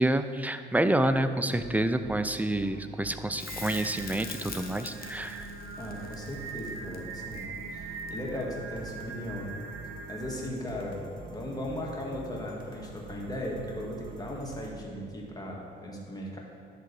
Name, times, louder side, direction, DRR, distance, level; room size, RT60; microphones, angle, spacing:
voice 1, 0.0-5.5, right 1 dB, 10° right, 9 dB, 0.4 m, -28 dB
sound 1, 1.6-14.7, right 1 dB, 25° right, 1.6 m, -46 dB
Crackle, 3.4-8.5 11.3-11.4, left 5 dB, 50° left, 1.1 m, -44 dB
Singing, 3.5-10.5, right 5 dB, 80° right, 0.9 m, -42 dB
voice 2, 5.8-9.5 10.1-16.4, equal, 20° left, -2 dB, 1.9 m, -37 dB
11.0 x 3.8 x 6.9 m, 2.3 s
cardioid pair, 90°, 20 cm